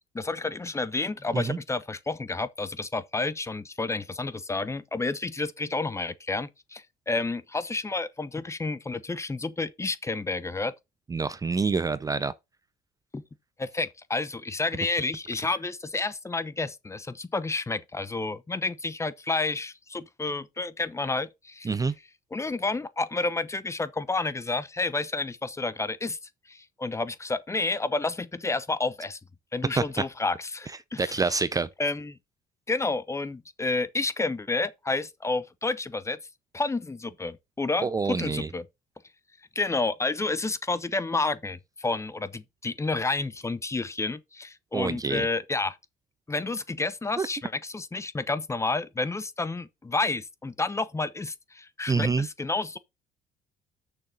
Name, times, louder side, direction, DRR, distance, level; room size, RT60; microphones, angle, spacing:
voice 1, 0.1-10.7 13.1-13.2 13.6-21.7 22.3-26.2 26.5-29.2 29.5-31.3 31.8-32.2 32.7-36.2 36.5-38.7 39.5-45.8 46.3-52.8, left 3 dB, 15° left, 0.9 m, -30 dB
voice 2, 11.1-12.3 21.6-21.9 29.8-29.9 31.0-31.7 37.8-38.5 44.7-45.3 47.2-47.3 51.9-52.3, right 4 dB, 20° right, 0.5 m, -26 dB
6.6 x 6.6 x 5.2 m
cardioid pair, 110°, 17 cm